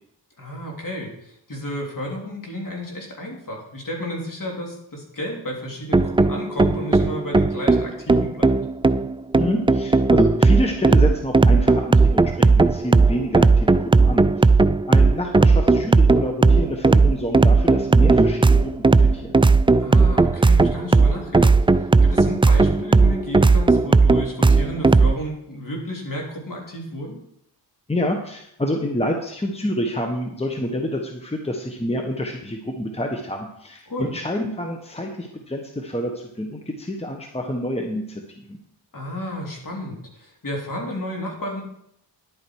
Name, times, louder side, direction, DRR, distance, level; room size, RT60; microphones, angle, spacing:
voice 1, 0.4-8.5 19.8-27.2 33.9-34.1 38.9-41.6, left 1 dB, 45° left, -1 dB, 3.5 m, -32 dB
sound 1, 5.9-25.1, right 3 dB, 15° right, 0.3 m, -16 dB
voice 2, 9.4-14.5 14.9-19.4 27.9-38.2 38.5-38.6, equal, 15° left, 3 dB, 1.3 m, -28 dB
11.0 x 8.7 x 4.7 m, 0.74 s
cardioid pair, 70°, 44 cm